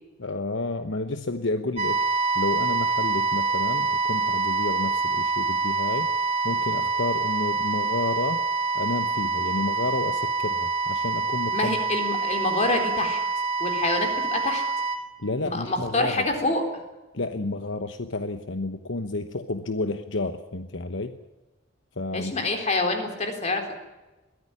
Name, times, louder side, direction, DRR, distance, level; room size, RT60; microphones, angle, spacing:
voice 1, 0.2-2.0 2.3-6.1 6.4-8.4 8.7-11.8 15.2-16.3 17.1-21.2 22.0-22.5, left 2 dB, 65° left, 8 dB, 1.0 m, -30 dB
sound 1, 1.8-15.0, right 3 dB, 35° right, 3.6 m, -26 dB
voice 2, 11.5-13.2 13.6-14.6 15.5-16.6 22.1-23.7, left 2 dB, 35° left, 5 dB, 3.9 m, -26 dB
22.0 x 15.0 x 9.9 m, 1.1 s
head